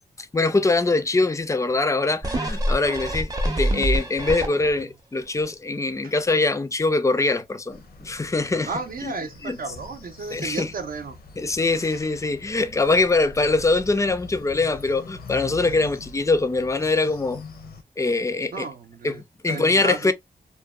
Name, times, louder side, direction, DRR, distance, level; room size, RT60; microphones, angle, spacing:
voice 1, 0.2-3.3 3.6-8.7 9.0-9.1 9.4-9.6 10.3-10.7 11.4-17.4 18.0-18.7 19.0-19.1 19.4-20.1, left 3 dB, 20° left, 0.4 m, -23 dB
sound 1, 2.2-4.9 5.4-5.5, right 1 dB, 25° right, 0.6 m, -25 dB
sound 2, 7.7-17.8, left 3 dB, 85° left, 0.6 m, -43 dB
voice 2, 8.6-11.2 18.5-19.2 19.5-20.1, right 4 dB, 70° right, 0.6 m, -33 dB
2.5 x 2.2 x 2.3 m
wide cardioid pair, 90°, 15 cm